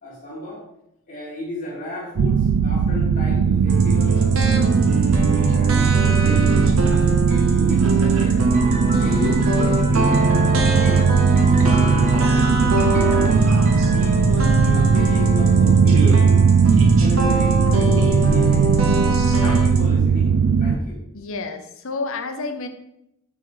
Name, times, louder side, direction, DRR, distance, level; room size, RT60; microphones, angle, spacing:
voice 1, 0.0-0.6 1.1-4.7 5.2-9.3 9.9-11.1 11.4-13.4 13.9-16.3 17.0-18.9 19.4-21.0, left 1 dB, 40° left, -7 dB, 2.0 m, -34 dB
sound 1, 2.2-20.8, right 6 dB, 85° right, 0.4 m, -18 dB
sound 2, 3.7-19.8, right 2 dB, 65° right, 1.0 m, -22 dB
Piano, 8.5-15.4, equal, 35° right, 1.2 m, -33 dB
voice 2, 21.1-22.7, left 3 dB, 65° left, 7 dB, 0.7 m, -29 dB
6.1 x 5.4 x 3.9 m, 0.81 s
head